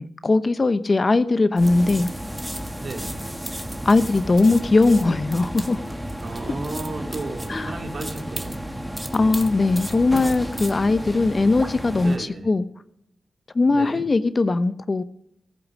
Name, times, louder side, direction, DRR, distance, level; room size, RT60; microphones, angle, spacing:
voice 1, 0.0-2.1 3.8-5.8 7.5-7.8 9.1-12.6 13.5-15.0, left 3 dB, 40° left, 13 dB, 0.8 m, -20 dB
sound 1, 1.6-12.2, equal, 5° right, 1.5 m, -32 dB
voice 2, 2.8-3.2 6.2-8.6 9.1-9.4 12.0-12.5 13.7-14.0, right 3 dB, 60° right, 3 dB, 2.4 m, -34 dB
14.5 x 10.0 x 6.5 m, 0.78 s
cardioid pair, 50°, 0 cm